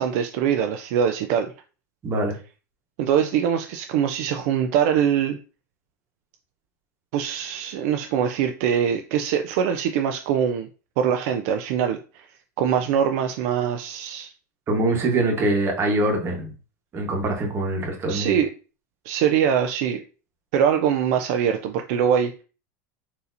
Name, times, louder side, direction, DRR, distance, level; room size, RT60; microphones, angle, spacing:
voice 1, 0.0-1.5 3.0-5.4 7.1-10.7 11.0-12.3 12.6-14.3 18.1-18.5 19.0-20.0 20.5-22.3, right 8 dB, 60° right, 5 dB, 0.3 m, -23 dB
voice 2, 2.0-2.3 14.7-16.5 16.9-18.3, right 2 dB, 30° right, 1 dB, 1.1 m, -23 dB
4.1 x 2.7 x 2.6 m, 0.36 s
supercardioid pair, 125°, 9 cm